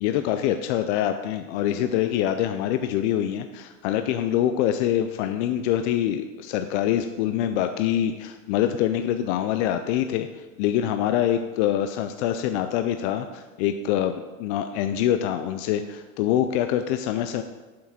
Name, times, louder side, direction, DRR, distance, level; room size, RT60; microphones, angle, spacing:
voice 1, 0.0-14.1 14.4-17.4, left 11 dB, 85° left, 8 dB, 0.5 m, -25 dB
7.6 x 5.9 x 4.2 m, 1.3 s
supercardioid pair, 140°, 34 cm